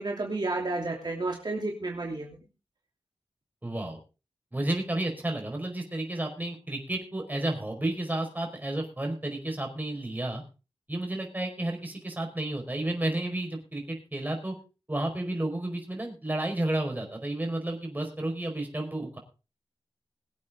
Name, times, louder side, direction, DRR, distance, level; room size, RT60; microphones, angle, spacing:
voice 1, 0.0-2.4, right 2 dB, 50° right, -1 dB, 3.0 m, -31 dB
voice 2, 3.6-4.0 4.5-10.4 10.9-14.5 14.9-19.2, right 1 dB, 20° right, 3 dB, 5.0 m, -31 dB
22.5 x 8.4 x 3.8 m, 0.32 s
wide cardioid pair, 105°, 10 cm